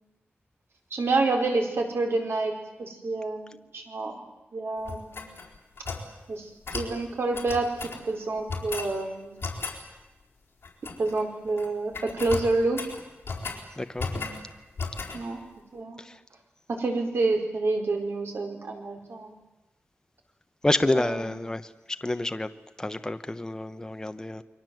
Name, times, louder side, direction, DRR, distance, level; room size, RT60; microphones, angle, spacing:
voice 1, 0.9-4.1 4.5-5.3 6.3-7.7 8.1-9.4 11.0-12.8 15.1-15.4 15.7-16.0 16.7-19.4 20.9-21.3, right 3 dB, 65° right, 4.7 m, -28 dB
sound 1, 4.8-6.1 6.6-6.9 7.3-8.0 8.5-8.9 9.4-9.8 10.6-11.2 11.5-11.7 11.9-13.6 14.0-14.4 14.8-15.2, left 4 dB, 60° left, 4.3 m, -35 dB
voice 2, 13.8-14.1 16.0-16.1 20.6-21.7 22.0-22.5 22.8-24.4, left 2 dB, 15° left, 0.9 m, -28 dB
29.0 x 23.0 x 7.8 m
wide cardioid pair, 150°, 4 cm